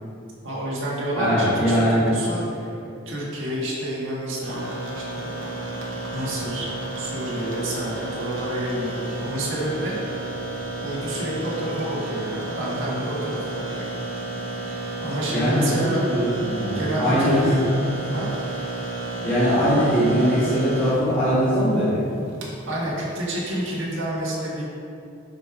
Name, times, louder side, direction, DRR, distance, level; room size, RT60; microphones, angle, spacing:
voice 1, 0.4-2.7 3.1-5.5 6.1-6.7 7.0-10.2 10.8-13.9 15.0-16.0 16.7-17.6 18.1-18.3 22.6-24.6, right 1 dB, 70° right, -6 dB, 1.6 m, -29 dB
voice 2, 1.2-2.1 15.3-17.6 19.2-22.1, equal, 10° left, -13 dB, 1.5 m, -21 dB
sound 1, 4.4-24.0, right 2 dB, 90° right, 1.1 m, -32 dB
5.3 x 5.3 x 4.9 m, 2.6 s
head